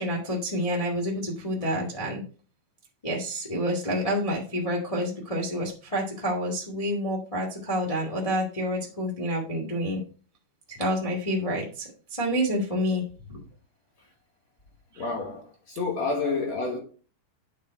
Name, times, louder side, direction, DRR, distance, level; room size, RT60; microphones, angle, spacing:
voice 1, 0.0-2.2 3.0-10.0 10.7-13.0 14.9-15.0, equal, 15° left, 1.1 m, -28 dB
voice 2, 15.0-16.8, left 3 dB, 55° left, 2.4 m, -29 dB
8.4 x 5.5 x 4.5 m
omnidirectional pair, 4.4 m